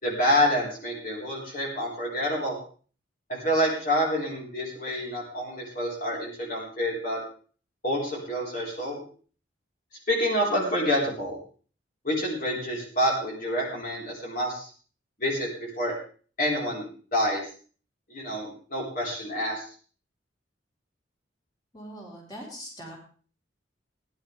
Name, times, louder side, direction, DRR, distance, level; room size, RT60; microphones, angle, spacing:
voice 1, 0.0-2.6 3.3-7.2 7.8-9.0 10.1-11.4 12.0-14.7 15.2-15.9 16.4-16.9 17.1-17.4 18.1-19.7, equal, 50° left, -3 dB, 4.4 m, -27 dB
voice 2, 21.7-23.0, equal, 20° left, -3 dB, 4.1 m, -41 dB
19.0 x 11.0 x 3.5 m, 0.41 s
head